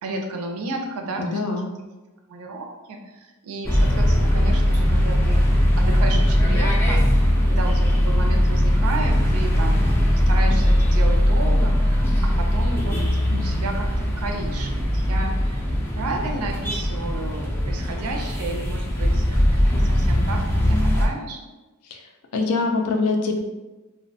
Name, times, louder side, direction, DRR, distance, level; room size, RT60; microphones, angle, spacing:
voice 1, 0.0-1.4 2.3-3.0 3.4-5.4 5.8-9.8 10.3-15.6 16.0-21.4, right 2 dB, 75° right, 3 dB, 0.4 m, -32 dB
voice 2, 1.2-1.7 21.9-22.0 22.3-23.4, left 3 dB, 75° left, 3 dB, 0.4 m, -23 dB
sound 1, 3.6-21.1, equal, 10° left, 0.4 m, -20 dB
2.4 x 2.1 x 2.6 m, 1.1 s
head